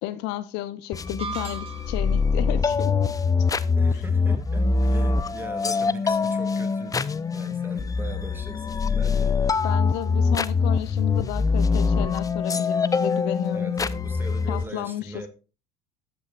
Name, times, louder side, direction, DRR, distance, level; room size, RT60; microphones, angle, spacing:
voice 1, 0.0-2.9 3.9-4.0 9.6-13.7 14.5-15.1, left 13 dB, 55° left, 0.8 m, -32 dB
sound 1, 0.9-14.6, left 4 dB, 15° left, 0.6 m, -24 dB
sound 2, 1.2-2.2, right 5 dB, 30° right, 2.2 m, -36 dB
voice 2, 3.8-9.4 13.5-15.3, right 1 dB, 10° right, 2.1 m, -40 dB
13.0 x 8.9 x 2.5 m
hypercardioid pair, 70°, 20 cm